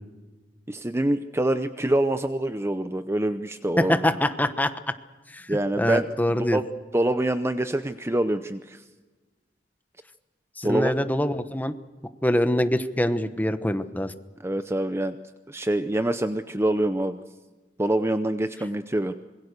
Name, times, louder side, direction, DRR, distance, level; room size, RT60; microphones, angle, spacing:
voice 1, 0.7-4.0 5.5-6.2 6.5-6.6 6.9-8.8 10.6-10.9 14.4-15.2 15.5-17.2 17.8-19.1, right 1 dB, 15° right, 10 dB, 0.7 m, -25 dB
voice 2, 3.8-4.7 5.3-5.5 5.8-6.6 10.6-11.7 12.2-14.1, left 1 dB, 10° left, 10 dB, 1.0 m, -24 dB
26.0 x 22.0 x 6.7 m, 1.3 s
head